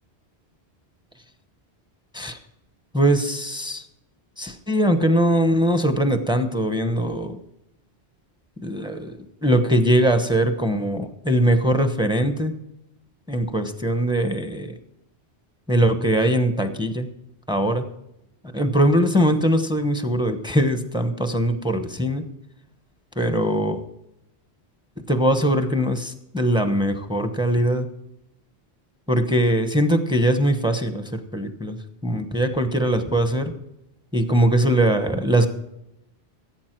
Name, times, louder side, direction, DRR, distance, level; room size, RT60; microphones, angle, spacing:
voice 1, 2.9-3.8 4.4-7.4 8.6-12.6 13.3-14.7 15.7-17.1 17.5-17.8 18.5-22.2 23.2-23.8 25.1-27.9 29.1-33.5 34.1-35.5, right 1 dB, 5° right, 8 dB, 0.9 m, -21 dB
16.0 x 8.3 x 4.6 m, 0.87 s
omnidirectional pair, 1.1 m